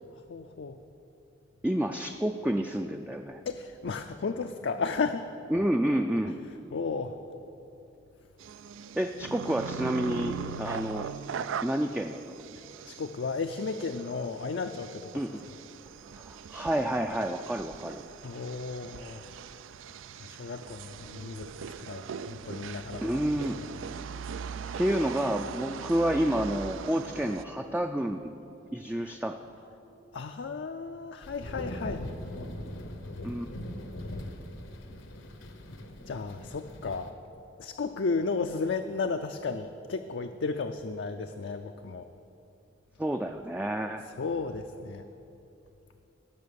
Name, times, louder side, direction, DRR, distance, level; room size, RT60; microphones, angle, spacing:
voice 1, 0.3-0.8 3.5-5.3 6.7-7.1 12.6-15.1 18.2-19.3 20.2-21.5 21.8-23.3 30.1-32.1 36.1-37.1 37.6-42.1 44.2-45.0, left 4 dB, 65° left, 6 dB, 0.4 m, -34 dB
voice 2, 1.6-3.4 5.5-6.4 8.9-11.1 11.6-12.4 15.1-15.4 16.1-18.0 23.0-23.6 24.8-28.4 28.7-29.4 33.2-33.5 43.0-44.0, right 1 dB, 5° right, 4 dB, 0.3 m, -29 dB
sound 1, 8.4-27.4, right 6 dB, 90° right, 0.4 m, -40 dB
sound 2, 31.2-37.1, left 1 dB, 85° left, 1.1 m, -40 dB
17.5 x 6.4 x 6.9 m, 2.8 s
head